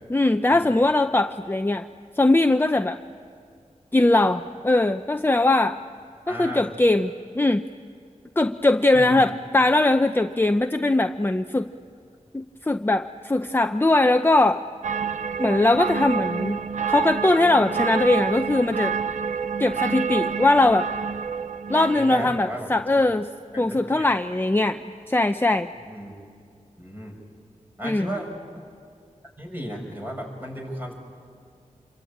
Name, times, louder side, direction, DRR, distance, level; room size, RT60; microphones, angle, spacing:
voice 1, 0.1-1.9 2.2-3.0 3.9-5.8 6.3-7.7 8.4-11.7 12.3-14.6 15.4-16.6 16.9-19.0 19.6-20.9 21.7-23.3 23.6-25.7 27.8-28.1, left 2 dB, 15° left, 8 dB, 0.6 m, -21 dB
voice 2, 6.3-6.6 8.9-9.3 21.9-23.0 23.5-24.1 25.8-26.1 26.8-27.1 27.8-28.3 28.5-28.7 29.4-30.9, equal, 15° right, 1 dB, 6.6 m, -35 dB
sound 1, 14.8-22.5, right 6 dB, 70° right, 0.8 m, -28 dB
27.5 x 24.0 x 8.6 m, 2.3 s
wide cardioid pair, 75°, 13 cm